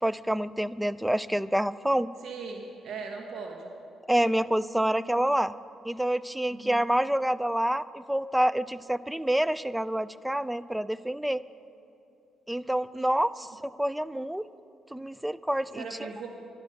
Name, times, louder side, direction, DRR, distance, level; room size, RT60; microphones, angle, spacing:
voice 1, 0.0-2.1 4.1-5.5 5.9-11.4 12.5-14.5 14.9-15.8, right 1 dB, 5° right, 17 dB, 0.3 m, -27 dB
voice 2, 2.2-3.7 6.5-6.8 15.7-16.3, right 4 dB, 65° right, 2 dB, 1.2 m, -39 dB
12.0 x 11.5 x 6.5 m, 2.7 s
cardioid pair, 90°, 0 cm